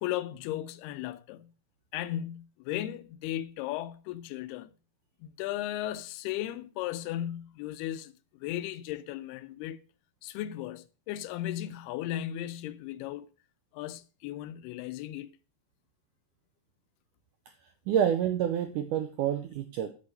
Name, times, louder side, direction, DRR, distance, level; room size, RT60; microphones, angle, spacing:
voice 1, 0.0-1.5 1.9-4.7 5.2-9.8 10.2-13.3 13.7-15.3, left 13 dB, 85° left, 2.6 m, -36 dB
voice 2, 17.9-19.9, right 9 dB, 80° right, 1.8 m, -28 dB
8.8 x 6.1 x 6.6 m
omnidirectional pair, 4.6 m